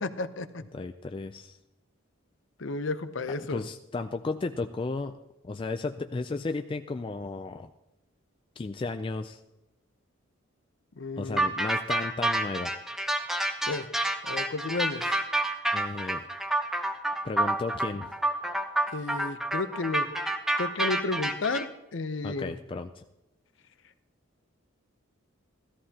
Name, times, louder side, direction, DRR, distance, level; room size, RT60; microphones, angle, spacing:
voice 1, 0.0-0.6 2.6-3.6 11.0-11.5 13.7-13.9 14.3-15.1 18.9-20.1 20.6-22.5, left 3 dB, 60° left, 11 dB, 0.7 m, -32 dB
voice 2, 0.7-1.6 3.3-5.2 5.4-7.7 8.6-9.4 11.2-12.7 15.7-16.3 17.2-18.1 22.2-23.0, left 3 dB, 25° left, 7 dB, 0.3 m, -34 dB
sound 1, 11.4-21.6, right 1 dB, ahead, 0.7 m, -28 dB
17.0 x 13.5 x 2.8 m, 0.95 s
head